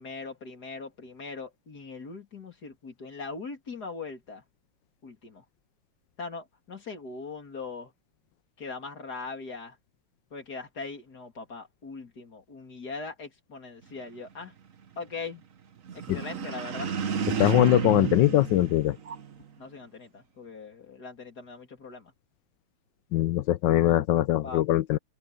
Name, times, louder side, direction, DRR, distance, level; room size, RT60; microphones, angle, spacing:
voice 1, 0.0-4.4 5.0-5.4 6.2-7.9 8.6-9.8 10.3-14.5 15.0-15.4 15.9-17.0 19.6-22.1 24.4-24.6, left 4 dB, 45° left, 3.7 m, -40 dB
sound 1, 15.9-19.4, right 7 dB, 45° right, 1.3 m, -31 dB
voice 2, 17.4-19.0 23.1-25.0, left 13 dB, 70° left, 1.2 m, -22 dB
omnidirectional pair, 2.4 m